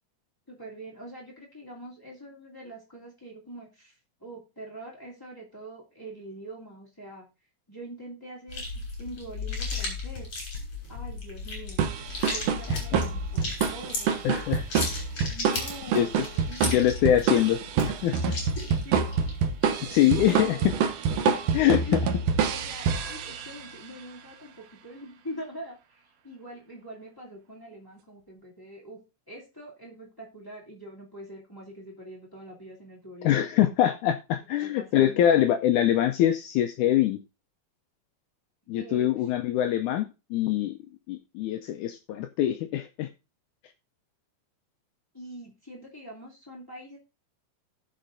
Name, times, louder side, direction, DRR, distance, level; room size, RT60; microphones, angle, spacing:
voice 1, 0.5-7.3 7.7-10.3 10.9-11.8 12.3-14.2 15.3-17.0 18.6-19.4 20.0-20.8 21.3-22.0 22.5-33.4 34.6-35.5 38.8-39.3 45.1-47.0, right 1 dB, 5° left, -4 dB, 2.0 m, -44 dB
sound 1, 8.5-20.5, left 3 dB, 40° left, 4.7 m, -36 dB
sound 2, 11.8-23.7, right 6 dB, 85° right, 1.3 m, -27 dB
voice 2, 12.7-13.0 14.2-14.6 15.9-16.1 16.6-17.6 17.8-18.4 19.9-20.6 21.5-21.8 33.2-37.2 38.7-40.8 41.1-43.1, left 11 dB, 80° left, 7 dB, 1.8 m, -24 dB
18.0 x 6.4 x 2.6 m, 0.28 s
omnidirectional pair, 4.1 m